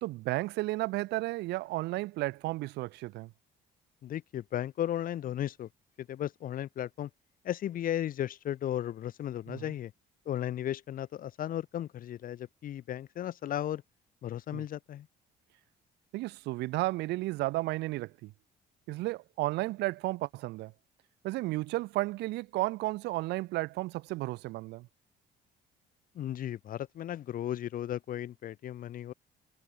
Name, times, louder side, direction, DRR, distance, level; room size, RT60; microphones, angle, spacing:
voice 1, 0.0-3.3 9.5-9.7 14.5-14.6 16.1-18.3 18.9-20.7 21.2-24.9, right 19 dB, 85° right, 1.1 m, -33 dB
voice 2, 4.0-5.7 6.0-7.1 7.4-9.9 10.3-13.8 14.2-15.1 26.1-29.1, left 11 dB, 55° left, 1.2 m, -35 dB
cardioid pair, 110°, 17 cm